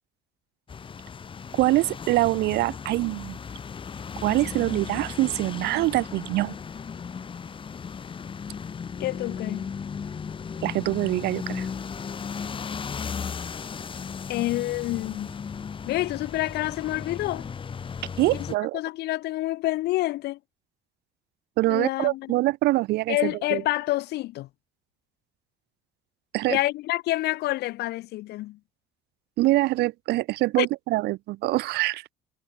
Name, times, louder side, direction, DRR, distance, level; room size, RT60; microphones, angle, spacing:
sound 1, 0.7-18.5, left 6 dB, 30° left, 1.1 m, -36 dB
voice 1, 1.5-3.4 4.2-6.5 10.6-11.7 18.2-18.8 21.6-23.6 26.3-26.6 29.4-32.0, right 18 dB, 80° right, 0.7 m, -24 dB
voice 2, 9.0-9.7 14.3-15.4 15.9-17.5 18.3-18.5 18.7-20.4 21.7-22.3 23.1-24.5 26.5-28.6 30.6-30.7, left 17 dB, 75° left, 0.8 m, -28 dB
cardioid pair, 110°, 17 cm